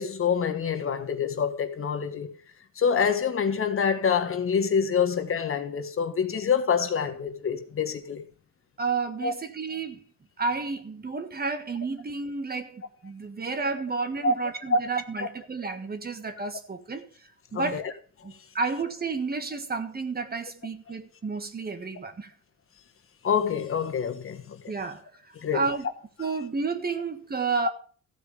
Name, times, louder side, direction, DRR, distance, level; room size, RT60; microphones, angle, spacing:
voice 1, 0.0-2.3 2.8-8.2 9.2-9.3 14.2-14.3 14.7-14.8 15.2-15.3 17.5-17.9 23.2-24.6 25.4-25.6, left 6 dB, 45° left, 1.4 m, -26 dB
voice 2, 8.8-10.0 10.4-17.1 17.5-17.8 18.2-22.3 24.7-25.9 26.2-27.7, right 4 dB, 30° right, 1.5 m, -31 dB
14.5 x 4.9 x 6.7 m
cardioid pair, 90°, 30 cm